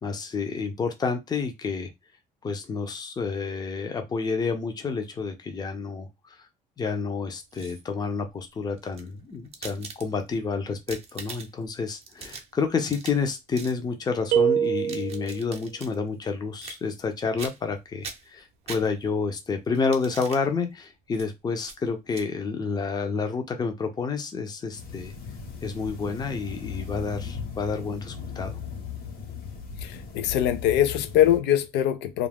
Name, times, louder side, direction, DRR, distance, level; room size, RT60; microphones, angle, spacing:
voice 1, 0.0-1.9 2.4-6.5 6.8-25.1 25.6-28.6, left 4 dB, 25° left, 0.5 m, -29 dB
pepper mill, 7.3-8.0 8.8-10.4 10.7-11.7 12.0-13.3 13.5-13.8 14.6-15.9 16.6-17.1 17.4-17.7 18.0-19.2 19.7-20.4 21.1-21.3 21.6-21.8 22.1-22.3, right 5 dB, 35° right, 0.6 m, -42 dB
sound 1, 14.3-15.5, right 8 dB, 85° right, 0.6 m, -24 dB
sound 2, 24.7-31.4, left 6 dB, 60° left, 1.1 m, -37 dB
voice 2, 29.8-32.3, left 11 dB, 90° left, 0.4 m, -23 dB
2.4 x 2.1 x 3.4 m
cardioid pair, 110°, 17 cm